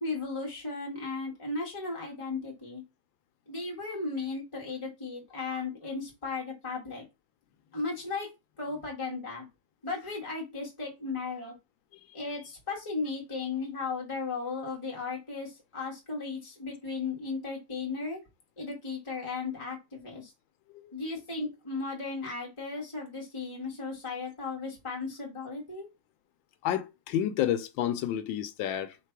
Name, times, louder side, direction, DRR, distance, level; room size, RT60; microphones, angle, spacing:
voice 1, 0.0-2.8 3.5-7.0 7.7-8.3 8.6-9.5 9.8-11.5 12.1-18.2 18.6-20.3 20.9-25.9, left 4 dB, 15° left, 1.5 m, -36 dB
voice 2, 26.6-29.0, left 10 dB, 80° left, 1.3 m, -30 dB
3.5 x 3.3 x 4.5 m
omnidirectional pair, 2.1 m